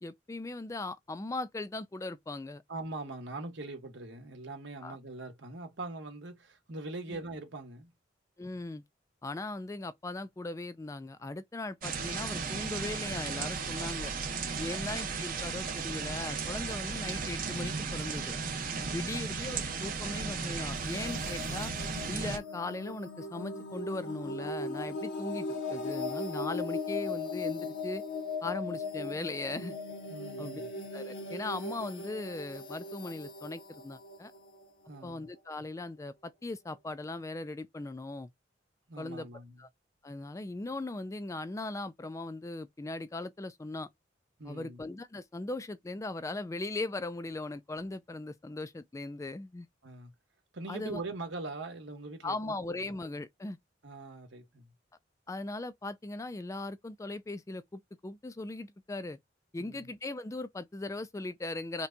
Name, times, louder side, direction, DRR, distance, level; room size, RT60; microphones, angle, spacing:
voice 1, 0.0-2.6 4.8-5.0 7.1-7.2 8.4-8.8 9.2-14.1 14.6-18.3 18.9-21.7 22.1-28.0 28.4-29.8 30.4-30.6 30.9-34.3 35.0-38.3 39.0-39.3 39.6-39.7 40.0-43.9 44.5-49.7 50.7-51.0 52.2-53.6 55.3-59.2 59.5-61.9, left 2 dB, 15° left, 0.3 m, -39 dB
voice 2, 2.7-7.9 14.5-14.8 18.8-19.1 30.1-30.7 34.3-34.4 34.9-35.3 38.9-39.6 44.4-44.8 49.8-50.1 50.5-52.9 53.8-54.7 59.6-59.9, right 2 dB, 80° right, 1.3 m, -42 dB
sound 1, 11.8-22.4, right 4 dB, 50° right, 0.9 m, -35 dB
sound 2, 20.7-35.4, left 3 dB, 85° left, 1.1 m, -38 dB
5.6 x 2.3 x 2.6 m
head